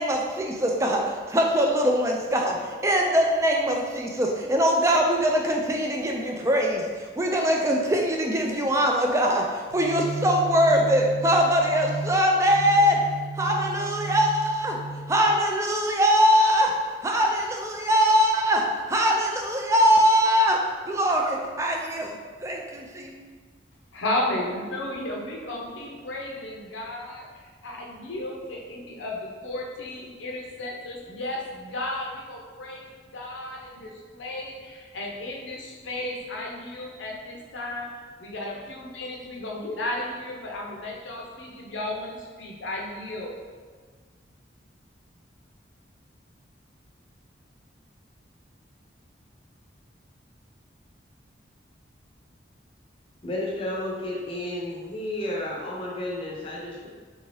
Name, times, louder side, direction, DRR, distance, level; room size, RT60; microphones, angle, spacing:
voice 1, 0.0-2.6 2.8-13.0 13.4-14.8 15.1-16.7 17.0-22.2 22.4-23.1, equal, 15° right, 1 dB, 0.3 m, -22 dB
sound 1, 9.7-15.2, right 3 dB, 50° right, 0.6 m, -34 dB
voice 2, 23.9-37.9 38.2-43.3, left 1 dB, 85° left, -1 dB, 0.7 m, -34 dB
voice 3, 53.2-56.9, left 1 dB, 30° left, -3 dB, 0.6 m, -32 dB
3.4 x 2.7 x 3.2 m, 1.6 s
head